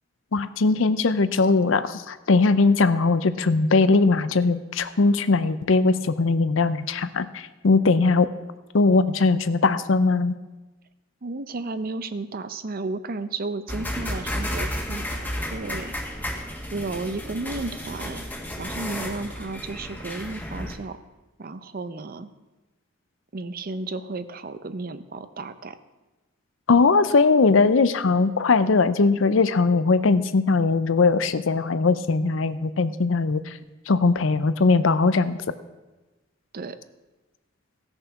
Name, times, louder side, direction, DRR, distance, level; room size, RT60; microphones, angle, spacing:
voice 1, 0.3-8.3 8.7-10.3 26.7-33.6 33.9-35.4, left 3 dB, 70° left, 13 dB, 0.6 m, -20 dB
voice 2, 11.2-15.9 16.7-18.2 18.6-21.0 21.4-22.3 23.3-25.8 36.5-36.8, right 3 dB, 45° right, 12 dB, 0.6 m, -33 dB
sound 1, 13.7-20.8, equal, 10° left, 1.5 m, -32 dB
16.0 x 6.7 x 5.8 m, 1.1 s
head